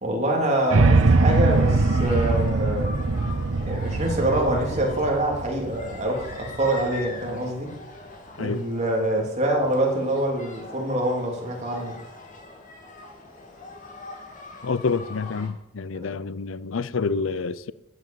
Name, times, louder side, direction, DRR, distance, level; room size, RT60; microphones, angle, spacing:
voice 1, 0.0-2.9 3.6-7.7 8.4-12.0, right 1 dB, 35° right, 3.3 m, -25 dB
sound 1, 0.5-15.5, left 2 dB, 40° left, 2.6 m, -42 dB
sound 2, 0.7-6.8, right 3 dB, 85° right, 0.8 m, -22 dB
voice 2, 14.6-17.7, left 4 dB, 75° left, 0.6 m, -28 dB
15.0 x 8.1 x 7.1 m
head